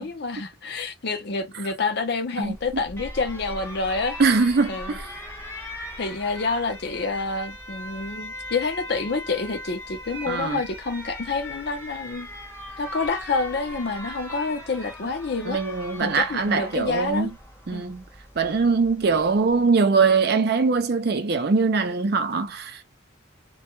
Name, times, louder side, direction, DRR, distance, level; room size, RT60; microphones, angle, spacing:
voice 1, 0.0-4.2 4.7-5.0 5.2-5.3 6.0-12.3 12.8-15.6 16.0-17.3 17.7-17.8, left 4 dB, 50° left, 0.5 m, -28 dB
Alarm, 2.4-19.7, left 1 dB, 10° left, 0.7 m, -39 dB
voice 2, 4.2-5.1 10.3-10.6 15.5-17.3 17.7-18.0 18.4-22.8, right 4 dB, 50° right, 0.4 m, -22 dB
2.2 x 2.1 x 2.9 m
head